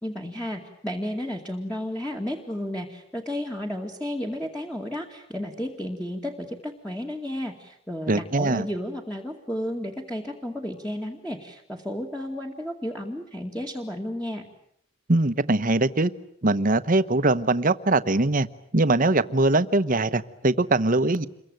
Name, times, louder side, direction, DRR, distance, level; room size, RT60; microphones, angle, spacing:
voice 1, 0.0-14.5, left 1 dB, 5° left, 1 dB, 2.3 m, -32 dB
voice 2, 8.1-8.7 15.1-16.1 16.4-18.5 18.7-21.3, right 2 dB, 45° right, 14 dB, 1.1 m, -22 dB
28.5 x 23.0 x 9.2 m, 0.73 s
head